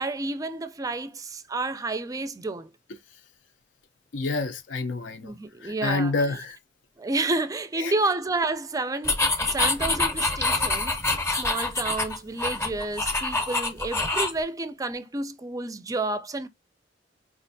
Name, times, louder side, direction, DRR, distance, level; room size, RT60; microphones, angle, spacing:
voice 1, 0.0-2.7 5.2-6.1 7.0-11.0 11.3-16.5, right 2 dB, 20° right, 0.4 m, -30 dB
voice 2, 4.1-5.3 5.6-6.6 7.8-7.9 9.4-9.5, left 3 dB, 75° left, 0.5 m, -28 dB
sound 1, 9.0-14.4, left 2 dB, 15° left, 0.7 m, -26 dB
4.3 x 2.5 x 2.6 m
head